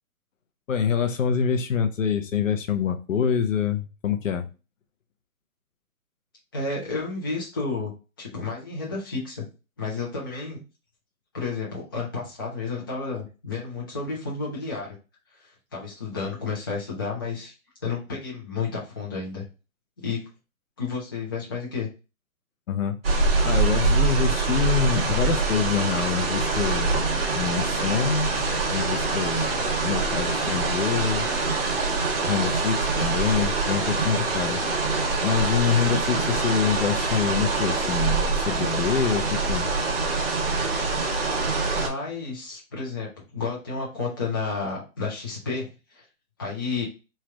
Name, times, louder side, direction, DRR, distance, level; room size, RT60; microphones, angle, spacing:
voice 1, 0.7-4.5 22.7-23.0 23.4-27.0 27.3-29.6 29.8-31.3 32.2-34.6 35.2-39.7, left 7 dB, 60° left, 7 dB, 0.7 m, -25 dB
voice 2, 6.5-7.9 8.2-9.4 9.8-10.6 11.3-14.9 15.3-17.5 17.8-19.4 20.0-20.2 20.8-21.9 41.7-43.1 43.3-46.0 46.4-46.8, left 4 dB, 15° left, -6 dB, 0.6 m, -31 dB
sound 1, 23.0-41.9, right 3 dB, 40° right, 0.9 m, -25 dB
3.2 x 2.4 x 4.3 m, 0.31 s
hypercardioid pair, 160°, 43 cm